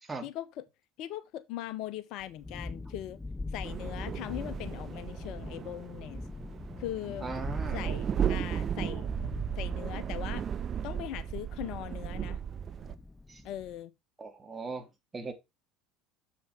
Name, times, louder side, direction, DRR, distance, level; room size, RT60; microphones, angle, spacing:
voice 1, 0.2-0.6 1.0-3.2 3.5-6.2 6.8-7.3 7.7-9.1 9.6-10.4 10.8-12.4 13.4-13.9, left 12 dB, 55° left, 0.9 m, -40 dB
Thunderstorm, 2.2-13.8, left 2 dB, 15° left, 0.5 m, -43 dB
sound 1, 3.6-13.0, right 8 dB, 40° right, 1.0 m, -35 dB
voice 2, 7.2-7.9 13.3-13.5 14.2-15.3, right 3 dB, 20° right, 2.7 m, -39 dB
7.6 x 7.0 x 3.5 m
hypercardioid pair, 70°, 0 cm